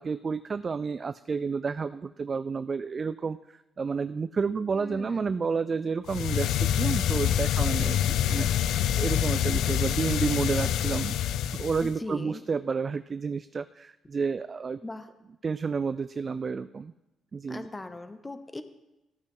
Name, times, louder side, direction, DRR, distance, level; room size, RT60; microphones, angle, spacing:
voice 1, 0.0-8.5 9.0-11.2 11.4-14.8 15.4-16.9 17.3-17.7, right 5 dB, 35° right, 13 dB, 0.3 m, -30 dB
voice 2, 4.8-5.4 11.8-12.4 14.8-15.1 17.5-18.6, left 2 dB, 15° left, 10 dB, 0.9 m, -39 dB
sound 1, 6.1-12.0, left 10 dB, 85° left, 0.4 m, -26 dB
14.5 x 8.8 x 3.8 m, 0.96 s
cardioid pair, 90°, 0 cm